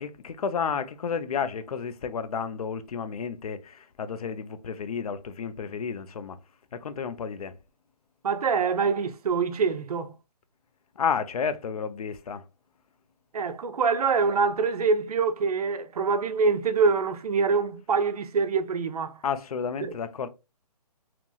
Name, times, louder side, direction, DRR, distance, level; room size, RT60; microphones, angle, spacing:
voice 1, 0.0-6.4 6.7-7.5 11.0-12.4 19.2-20.3, left 6 dB, 65° left, 0.4 m, -31 dB
voice 2, 8.2-10.1 13.3-19.1 19.8-19.9, right 5 dB, 65° right, 0.4 m, -25 dB
2.9 x 2.5 x 2.3 m
hypercardioid pair, 165°, 21 cm